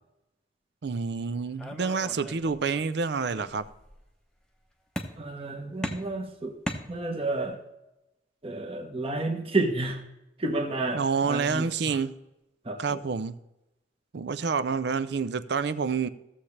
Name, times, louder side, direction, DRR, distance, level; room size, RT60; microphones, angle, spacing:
voice 1, 0.8-3.6 10.9-12.1 12.8-13.4 14.1-16.1, right 5 dB, 60° right, 15 dB, 0.5 m, -28 dB
sound 1, 1.6-2.9 3.3-4.0 5.0-5.5 5.8-7.4, equal, 5° left, 0.8 m, -38 dB
voice 2, 5.2-6.6 6.9-7.6 8.4-10.0 10.4-12.0 12.6-13.0, right 2 dB, 30° right, 4 dB, 1.1 m, -31 dB
15.5 x 7.1 x 3.3 m, 0.93 s
head